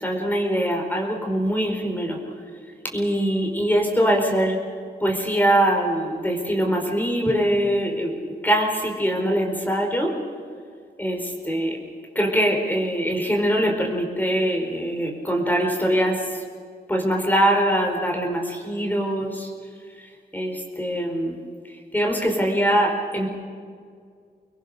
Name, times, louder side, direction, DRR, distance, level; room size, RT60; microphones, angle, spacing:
voice 1, 0.0-2.2 2.9-4.6 5.0-8.1 8.4-10.1 11.0-11.8 12.1-16.2 16.9-19.5 20.3-21.4 21.9-23.3, equal, 10° left, 1 dB, 4.6 m, -22 dB
25.5 x 21.5 x 6.6 m, 2.1 s
cardioid pair, 90°, 18 cm